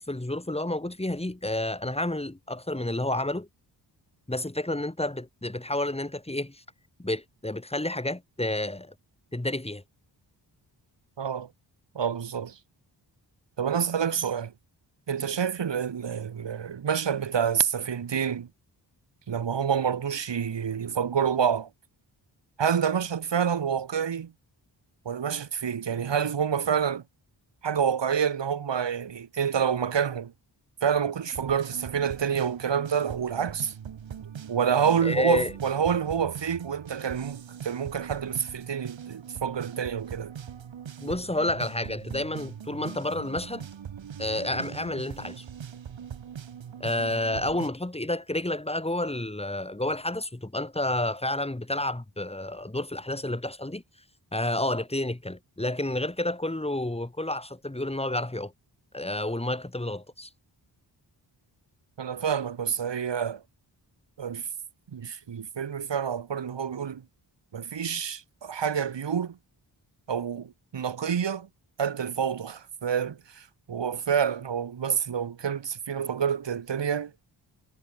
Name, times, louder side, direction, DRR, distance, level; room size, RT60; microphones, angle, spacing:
voice 1, 0.0-3.5 4.3-6.6 7.0-8.9 9.3-9.8 35.0-35.5 41.0-43.7 44.2-45.4 46.8-53.8 54.3-58.5 58.9-60.3, left 1 dB, 15° left, 5.2 m, -30 dB
voice 2, 11.2-11.5 11.9-12.6 13.6-14.5 15.1-18.5 19.3-21.7 22.6-24.3 25.0-27.0 27.6-30.3 30.8-33.7 34.5-40.3 62.0-63.4 64.2-64.5 64.9-67.0 67.5-69.4 70.1-71.5 71.8-77.1, right 7 dB, 75° right, 3.0 m, -28 dB
sound 1, 31.3-47.7, right 8 dB, 90° right, 6.1 m, -41 dB
cardioid pair, 65°, 44 cm